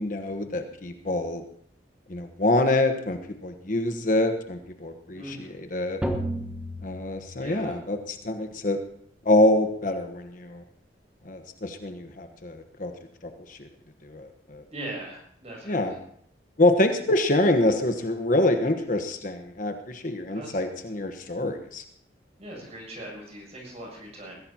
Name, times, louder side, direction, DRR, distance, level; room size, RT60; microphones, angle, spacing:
voice 1, 0.0-1.4 2.1-6.0 6.8-8.8 9.2-10.6 11.2-12.9 13.5-13.7 14.0-14.6 15.7-15.9 16.6-21.8, left 1 dB, 50° left, 6 dB, 1.2 m, -25 dB
voice 2, 5.1-5.6 7.4-7.8 14.7-16.0 20.3-20.6 22.4-24.4, right 1 dB, 40° right, -1 dB, 7.4 m, -40 dB
sound 1, 6.0-8.0, equal, 5° right, 1.3 m, -33 dB
21.5 x 16.0 x 2.9 m, 0.64 s
head